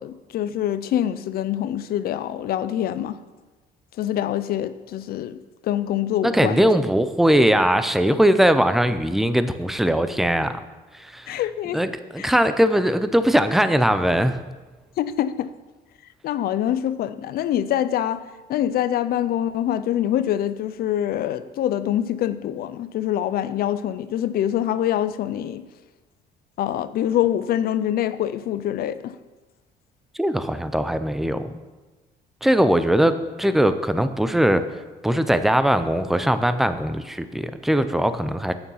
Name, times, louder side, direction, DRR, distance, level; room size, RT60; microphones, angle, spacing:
voice 1, 0.0-3.2 4.0-6.7 11.3-11.8 12.2-12.3 15.0-15.5 16.2-25.7 26.6-29.2, left 11 dB, 65° left, 0.5 m, -25 dB
voice 2, 6.2-10.6 10.9-11.4 11.7-14.4 30.1-31.5 32.4-34.7 35.0-38.5, equal, ahead, 0.5 m, -20 dB
8.8 x 6.9 x 5.6 m
cardioid pair, 110°, 17 cm